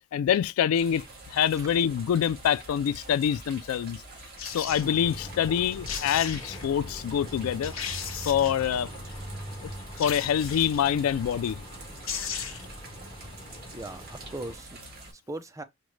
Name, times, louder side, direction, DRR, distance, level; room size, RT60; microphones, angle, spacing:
voice 1, 0.1-1.1 1.3-4.0 4.5-7.7 8.2-8.9 10.0-11.6, left 9 dB, 90° left, 0.3 m, -25 dB
sound 1, 0.7-15.1, right 2 dB, 50° right, 1.6 m, -46 dB
sound 2, 4.4-4.9 5.6-5.7 5.9-6.7 7.2-7.3 7.6-8.7 10.0-10.9 11.7-11.8 12.0-12.8 13.1-13.2, left 7 dB, 70° left, 1.0 m, -36 dB
sound 3, 4.6-14.5, equal, 20° left, 1.0 m, -42 dB
voice 2, 13.7-15.6, right 2 dB, 15° right, 0.4 m, -40 dB
5.0 x 2.1 x 3.0 m
head